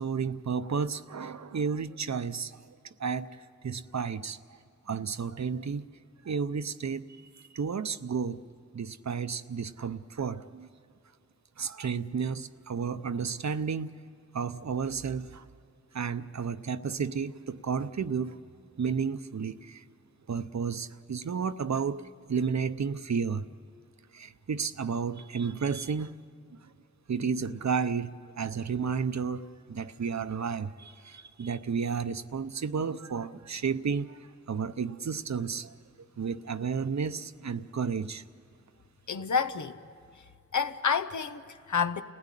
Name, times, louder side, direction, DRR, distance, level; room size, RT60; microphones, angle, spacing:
voice 1, 0.0-3.3 3.6-4.6 4.9-5.9 6.2-8.4 8.7-10.7 11.6-14.0 14.3-15.4 15.9-18.4 18.8-19.8 20.3-23.4 24.1-26.2 27.1-34.2 34.5-35.7 36.2-38.2, right 6 dB, 70° right, 0.8 m, -32 dB
voice 2, 39.1-39.8 40.5-42.0, left 6 dB, 80° left, 0.9 m, -29 dB
29.5 x 16.5 x 9.9 m
wide cardioid pair, 55°, 29 cm